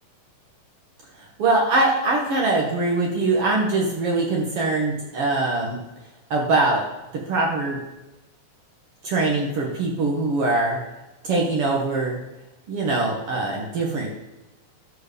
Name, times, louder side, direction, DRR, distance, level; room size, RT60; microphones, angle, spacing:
voice 1, 1.4-5.8 6.3-6.9 7.3-7.8 9.0-10.8 11.3-12.2 12.7-14.1, right 2 dB, 55° right, -2 dB, 1.8 m, -22 dB
12.0 x 4.7 x 6.8 m, 1.0 s
omnidirectional pair, 4.1 m